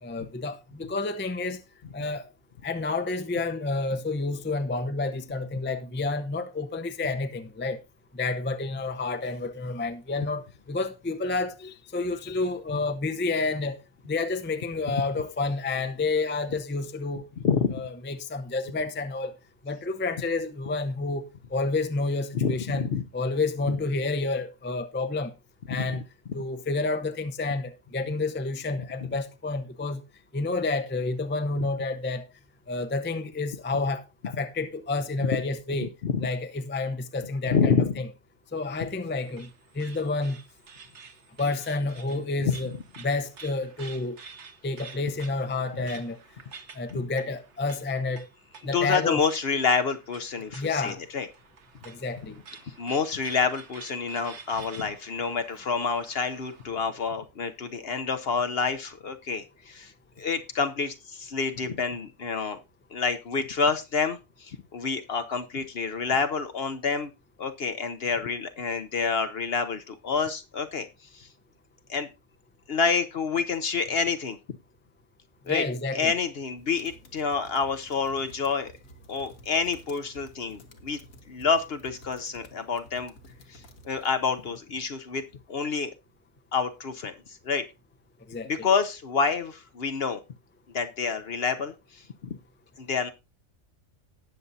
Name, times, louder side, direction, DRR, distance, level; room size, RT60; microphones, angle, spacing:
voice 1, 0.0-1.6 1.9-2.3 2.6-7.8 8.1-13.8 14.1-17.2 17.7-19.3 19.6-21.3 21.5-22.9 23.1-25.3 25.7-26.0 26.3-30.0 30.3-32.3 32.7-35.9 36.2-38.1 38.5-39.5 39.7-40.4 41.4-42.7 43.0-44.2 44.6-46.2 46.7-48.3 48.6-49.2 50.5-51.0 51.8-52.4 75.5-76.1 88.3-88.7, left 3 dB, 15° left, 0.5 m, -29 dB
voice 2, 17.4-17.8 22.3-23.0 25.8-25.9 29.0-29.1 35.8-36.3 37.5-37.9 46.9-47.0 48.7-51.3 52.8-59.9 60.2-62.6 62.9-67.1 67.4-70.9 71.1-71.3 71.9-72.1 72.7-74.4 75.5-75.6 75.9-78.7 79.1-81.0 81.3-83.1 83.5-85.2 85.5-85.9 86.5-87.6 88.4-90.2 90.7-92.4 92.8-93.1, left 5 dB, 55° left, 0.9 m, -28 dB
sound 1, 38.6-56.8, right 5 dB, 55° right, 1.4 m, -50 dB
sound 2, 76.6-84.6, equal, 75° left, 1.8 m, -52 dB
18.5 x 6.9 x 2.7 m
omnidirectional pair, 1.4 m